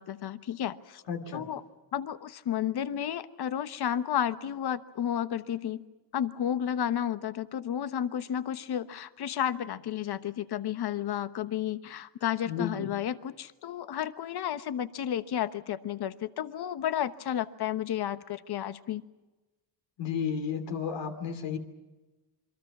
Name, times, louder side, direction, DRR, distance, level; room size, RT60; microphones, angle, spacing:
voice 1, 0.0-1.0 1.3-1.6 1.9-5.8 6.1-19.0, left 10 dB, 60° left, 12 dB, 1.1 m, -32 dB
voice 2, 1.1-1.5 12.4-12.9 20.0-21.6, left 6 dB, 80° left, 6 dB, 2.9 m, -33 dB
28.0 x 23.0 x 6.1 m, 1.1 s
cardioid pair, 100°, 43 cm